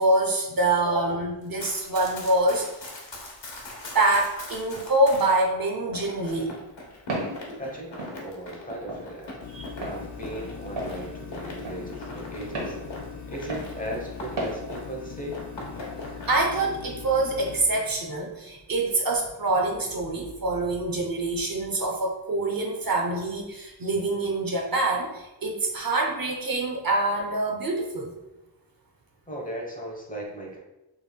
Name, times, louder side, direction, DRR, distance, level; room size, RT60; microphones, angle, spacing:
voice 1, 0.0-2.9 3.9-6.6 9.5-9.7 16.3-28.1, right 2 dB, 50° right, 0 dB, 0.7 m, -25 dB
Run, 1.4-5.4 5.9-15.0 15.3-16.7, left 2 dB, 70° left, 1.1 m, -41 dB
Walk footsteps, 7.1-7.4 8.0-8.2 8.9-9.1 9.8-10.0 10.8-11.0 11.6-11.8 12.5-12.8 13.5-13.7 14.4-14.6, right 1 dB, 80° right, 1.3 m, -31 dB
voice 2, 7.6-12.8 13.3-15.4 29.3-30.6, right 1 dB, 20° left, -1 dB, 1.0 m, -37 dB
sound 1, 9.4-17.6, left 6 dB, 40° left, 0.5 m, -40 dB
5.4 x 3.3 x 2.3 m, 0.98 s
wide cardioid pair, 115°, 45 cm